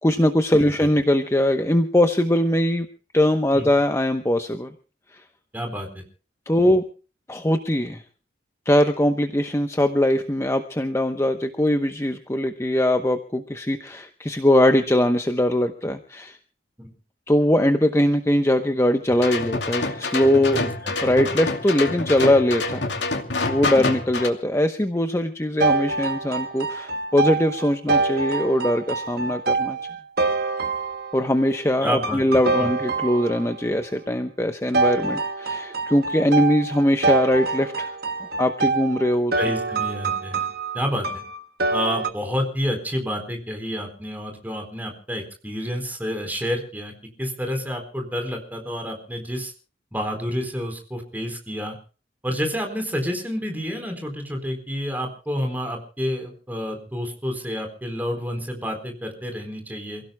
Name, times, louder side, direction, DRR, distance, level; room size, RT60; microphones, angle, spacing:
voice 1, 0.0-2.9 3.1-4.7 6.5-6.8 7.3-8.0 8.7-16.4 17.3-20.8 21.0-22.9 23.5-29.8 31.1-37.9 38.2-39.3, left 1 dB, 15° left, 7 dB, 0.9 m, -21 dB
voice 2, 5.5-6.0 16.8-16.9 20.5-20.9 23.7-23.9 31.8-32.2 32.6-32.7 39.4-40.5 40.7-41.1 41.7-46.9 47.2-49.5 49.9-51.7 52.2-60.0, equal, 10° right, 4 dB, 4.1 m, -29 dB
sound 1, 19.1-24.3, left 3 dB, 90° left, 2.6 m, -27 dB
sound 2, 25.6-31.4 32.0-33.7 34.7-42.1, right 3 dB, 60° right, 1.3 m, -25 dB
28.5 x 16.5 x 2.3 m, 0.37 s
head